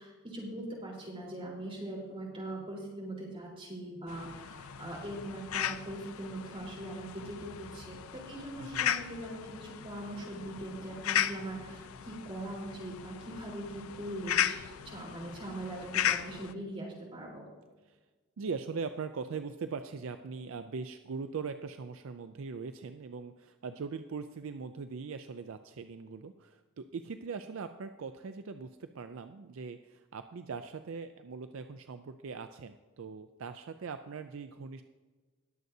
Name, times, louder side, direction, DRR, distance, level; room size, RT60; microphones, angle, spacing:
voice 1, 0.0-14.6 14.8-17.5, right 1 dB, 25° right, -4 dB, 3.8 m, -41 dB
sound 1, 4.1-16.5, left 10 dB, 75° left, 0.5 m, -36 dB
voice 2, 8.6-8.9 17.9-18.0 18.4-34.8, right 5 dB, 65° right, 9 dB, 0.4 m, -41 dB
20.5 x 7.8 x 2.7 m, 1.3 s
head